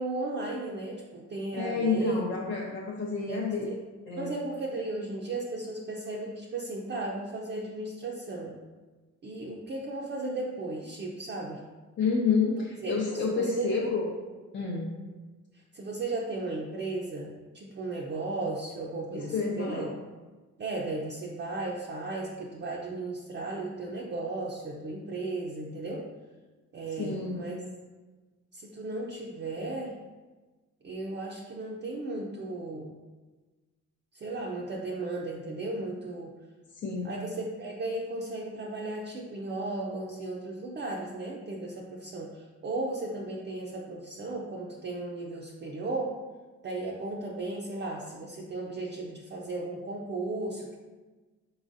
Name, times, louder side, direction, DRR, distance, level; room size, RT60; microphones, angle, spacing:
voice 1, 0.0-2.2 3.3-3.5 4.2-8.6 9.2-11.6 12.8-12.9 13.3-13.8 15.7-19.9 20.6-26.0 26.7-27.6 28.5-29.9 30.8-32.9 34.1-36.3 37.0-46.2 46.6-50.8, right 2 dB, 35° right, -3 dB, 0.5 m, -35 dB
voice 2, 1.5-3.7 4.1-4.3 12.0-14.1 14.5-14.9 19.1-19.9 27.0-27.5 36.8-37.2, left 4 dB, 40° left, -3 dB, 0.6 m, -29 dB
4.1 x 3.9 x 2.5 m, 1.3 s
cardioid pair, 100°, 31 cm